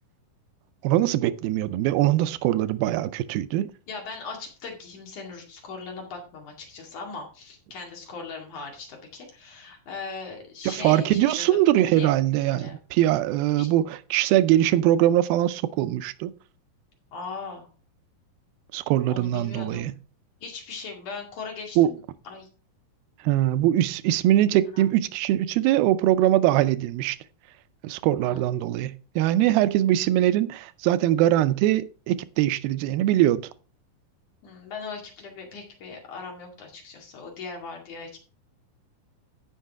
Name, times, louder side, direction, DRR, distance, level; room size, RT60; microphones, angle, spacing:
voice 1, 0.8-3.7 10.6-16.3 18.7-19.9 21.8-21.9 23.2-27.2 27.8-33.5, right 13 dB, 90° right, 2.5 m, -22 dB
voice 2, 3.9-12.7 13.5-13.7 17.1-17.7 19.1-19.9 20.4-22.5 24.7-24.8 28.2-28.6 34.4-38.2, left 4 dB, 60° left, 3.5 m, -39 dB
15.5 x 5.6 x 3.5 m
omnidirectional pair, 4.2 m